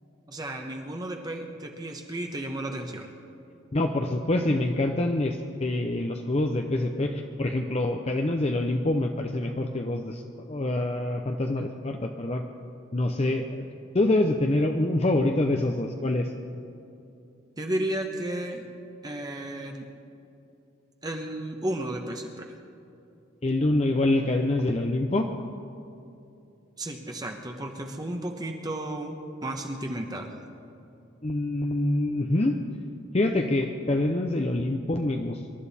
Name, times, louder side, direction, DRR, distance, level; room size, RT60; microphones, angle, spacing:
voice 1, 0.3-3.1 17.6-18.7 19.0-19.9 21.0-22.6 26.8-30.4, right 1 dB, 20° right, 3 dB, 1.0 m, -33 dB
voice 2, 3.7-10.2 10.5-12.4 12.9-13.7 13.9-16.3 23.4-25.3 31.2-32.6 33.1-35.4, left 1 dB, 30° left, 3 dB, 0.6 m, -26 dB
26.0 x 12.0 x 4.2 m, 2.7 s
head